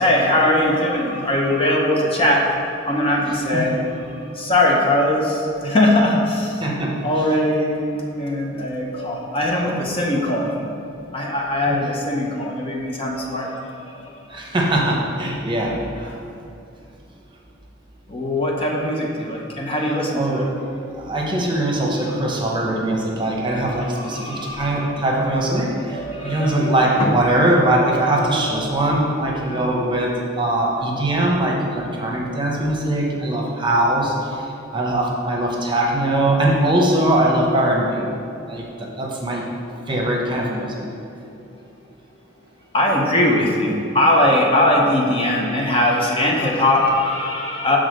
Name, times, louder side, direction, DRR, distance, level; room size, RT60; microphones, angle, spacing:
voice 1, 0.0-6.6 7.0-10.7 11.1-14.4 18.1-20.5 21.5-21.6 22.0-22.1 23.2-25.0 25.2-25.3 25.9-27.1 27.6-28.6 29.2-29.7 42.7-47.8, left 1 dB, 30° left, -1 dB, 0.7 m, -21 dB
voice 2, 6.6-7.0 9.6-9.8 11.7-11.8 14.3-16.2 20.1-20.5 21.0-34.4 34.7-38.1 38.4-39.5 39.9-40.9, right 1 dB, 25° right, -2 dB, 0.9 m, -21 dB
7.0 x 3.8 x 6.3 m, 2.7 s
head